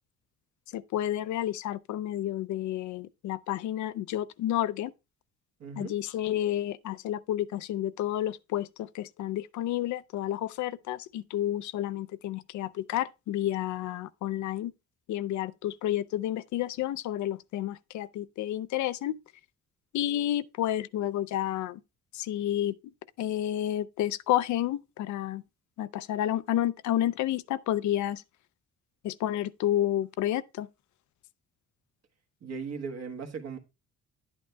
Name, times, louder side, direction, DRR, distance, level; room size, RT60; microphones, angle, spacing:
voice 1, 0.7-4.9 5.8-14.7 15.1-19.2 19.9-21.8 22.1-22.8 23.2-25.4 25.8-28.2 29.0-30.7, left 12 dB, 70° left, 0.5 m, -30 dB
voice 2, 5.6-5.9 32.4-33.6, right 5 dB, 55° right, 1.3 m, -37 dB
10.5 x 8.7 x 2.2 m
cardioid pair, 90°, 30 cm